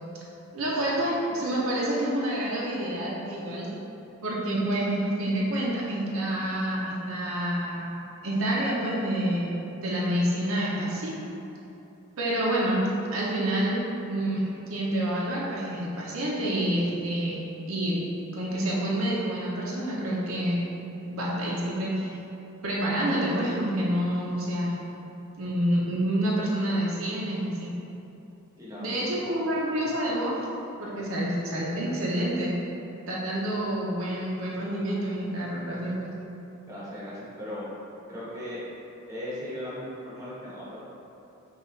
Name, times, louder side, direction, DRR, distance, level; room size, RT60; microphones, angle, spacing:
voice 1, 0.5-3.7 4.2-7.9 8.2-9.5 9.8-11.1 12.2-12.8 13.1-14.4 14.7-17.4 17.7-18.0 18.3-20.6 21.1-22.2 22.6-24.8 25.4-27.7 28.8-30.3 30.8-32.5 33.1-36.0, right 1 dB, 70° right, -5 dB, 0.7 m, -28 dB
voice 2, 28.6-29.0 36.7-37.6 38.1-38.6 39.1-40.8, left 1 dB, 15° right, -9 dB, 1.0 m, -37 dB
5.5 x 2.4 x 3.1 m, 2.9 s
head